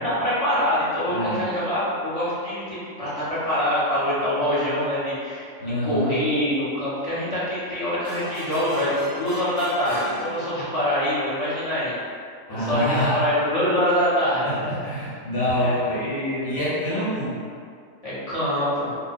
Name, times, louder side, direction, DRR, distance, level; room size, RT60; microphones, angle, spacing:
voice 1, 0.0-5.5 5.8-11.9 12.5-14.4 15.6-16.5 18.0-18.9, equal, 30° left, -12 dB, 0.8 m, -25 dB
voice 2, 1.1-1.5 5.6-6.2 12.5-13.2 14.4-16.0 16.4-17.4, left 1 dB, 55° left, -10 dB, 1.1 m, -26 dB
sound 1, 8.0-11.0, right 1 dB, 30° right, 0.8 m, -35 dB
2.4 x 2.2 x 4.0 m, 2.2 s
omnidirectional pair, 1.4 m